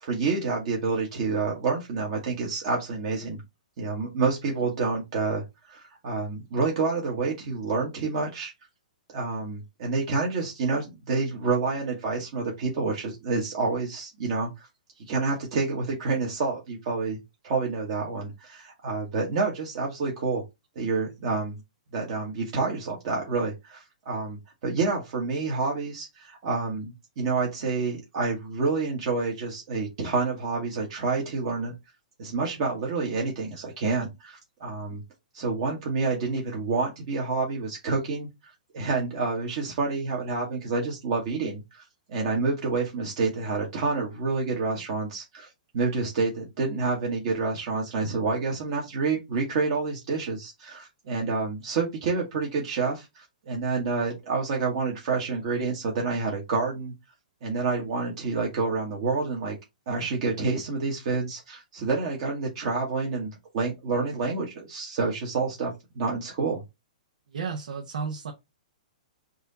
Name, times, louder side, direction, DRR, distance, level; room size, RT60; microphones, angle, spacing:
voice 1, 0.0-3.4 3.8-8.5 9.1-14.7 15.1-17.2 17.4-20.4 20.7-21.6 21.9-31.7 32.2-35.0 35.3-56.9 57.4-59.5 59.9-66.6, right 4 dB, 45° right, 1.5 m, -28 dB
voice 2, 67.3-68.3, right 5 dB, 80° right, 1.1 m, -33 dB
4.7 x 2.8 x 4.0 m
hypercardioid pair, 160°, 5 cm